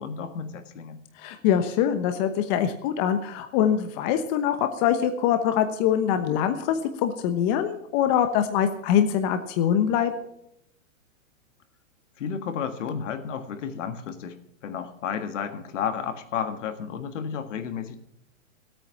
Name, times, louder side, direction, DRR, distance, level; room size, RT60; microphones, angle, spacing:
voice 1, 0.0-1.0 12.2-14.4 14.6-18.0, left 7 dB, 65° left, 9 dB, 1.8 m, -32 dB
voice 2, 1.2-10.1, left 9 dB, 35° left, 8 dB, 1.0 m, -24 dB
17.0 x 8.8 x 5.8 m, 0.77 s
hypercardioid pair, 145°, 39 cm